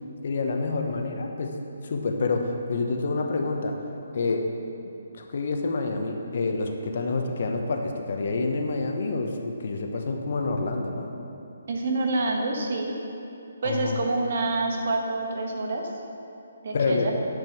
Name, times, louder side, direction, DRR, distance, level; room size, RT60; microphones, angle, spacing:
voice 1, 0.2-1.6 1.8-3.8 4.1-4.5 5.1-11.1 13.6-14.0 16.7-17.1, left 3 dB, 55° left, 3 dB, 1.0 m, -28 dB
voice 2, 11.7-12.9 13.6-15.9 16.6-17.1, right 2 dB, 55° right, 1 dB, 1.4 m, -27 dB
11.0 x 5.3 x 6.1 m, 2.8 s
hypercardioid pair, 160°, 0 cm